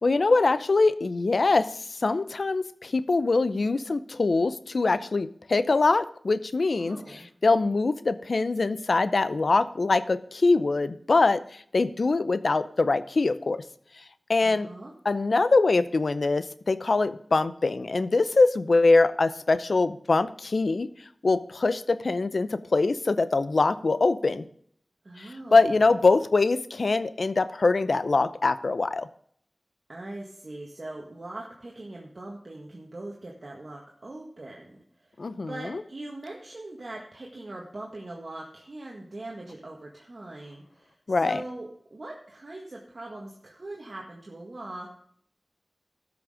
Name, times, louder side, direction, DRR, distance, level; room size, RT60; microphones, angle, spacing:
voice 1, 0.0-7.0 7.4-11.4 11.7-13.6 14.3-14.7 15.0-20.9 21.2-24.4 25.2-29.1 35.2-35.8 41.1-41.4, left 3 dB, 75° left, 14 dB, 0.6 m, -23 dB
voice 2, 6.8-7.3 14.4-14.9 25.0-25.9 29.9-35.2 35.5-45.0, right 2 dB, 60° right, -2 dB, 1.8 m, -41 dB
13.0 x 6.2 x 5.0 m, 0.64 s
wide cardioid pair, 50°, 0 cm